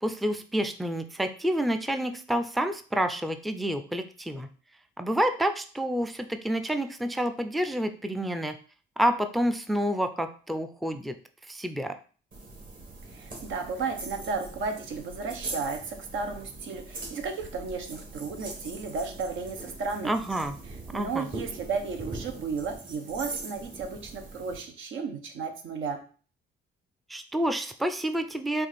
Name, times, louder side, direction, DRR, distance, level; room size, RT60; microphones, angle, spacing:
voice 1, 0.0-4.5 5.0-8.6 9.0-11.2 11.5-12.0 20.0-20.6 20.9-21.3 27.1-28.7, equal, ahead, 8 dB, 0.4 m, -28 dB
sound 1, 12.3-24.6, right 3 dB, 45° right, 1.6 m, -42 dB
voice 2, 13.1-20.1 20.9-26.0, right 4 dB, 80° right, 5 dB, 0.9 m, -34 dB
4.6 x 2.6 x 4.1 m, 0.40 s
cardioid pair, 90°, 20 cm